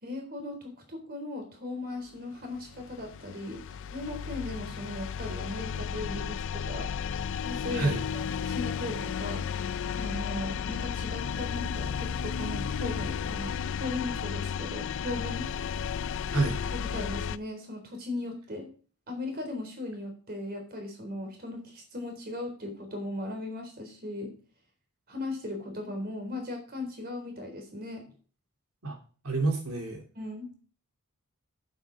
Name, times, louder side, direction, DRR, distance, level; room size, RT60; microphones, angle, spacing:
voice 1, 0.0-6.9 7.4-9.5 9.9-13.5 13.8-15.5 16.9-18.7 19.1-24.3 25.1-28.0 30.2-30.5, left 2 dB, 45° right, 3 dB, 3.7 m, -37 dB
sound 1, 2.4-17.4, left 7 dB, 60° left, 0.4 m, -33 dB
voice 2, 7.7-8.0 16.3-16.6 28.8-29.0 29.2-30.0, right 3 dB, 75° right, 2 dB, 3.1 m, -28 dB
8.8 x 7.9 x 5.0 m, 0.40 s
head